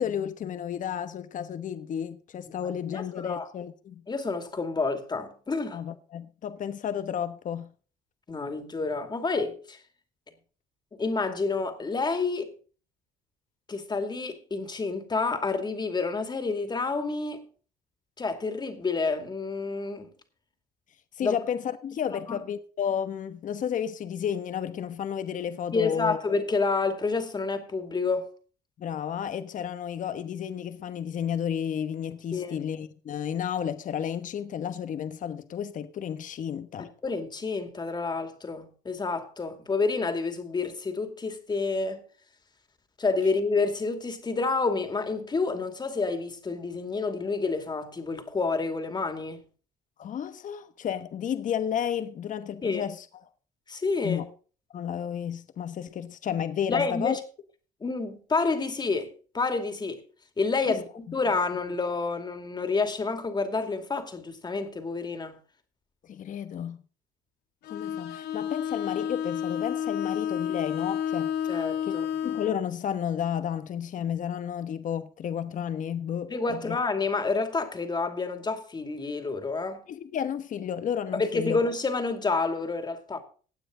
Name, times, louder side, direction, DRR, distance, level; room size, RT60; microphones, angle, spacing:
voice 1, 0.0-4.0 5.7-7.7 21.2-26.2 28.8-36.9 50.0-53.0 54.0-54.3 54.7-57.2 60.7-60.8 66.1-66.8 67.7-71.3 71.9-72.0 72.2-76.8 79.9-81.6, left 8 dB, 50° left, 1.2 m, -32 dB
voice 2, 2.6-3.5 4.1-5.8 8.3-9.8 11.0-12.5 13.7-17.4 18.2-20.1 21.2-21.4 22.3-22.4 25.7-28.3 32.3-32.6 36.8-42.0 43.0-49.4 52.6-52.9 53.7-54.2 56.7-57.2 57.8-60.0 60.4-65.4 71.5-72.0 76.3-79.8 81.1-83.2, left 4 dB, 25° left, 2.4 m, -29 dB
Bowed string instrument, 67.6-72.6, left 9 dB, 75° left, 1.1 m, -30 dB
16.0 x 9.0 x 3.8 m
cardioid pair, 110°, 17 cm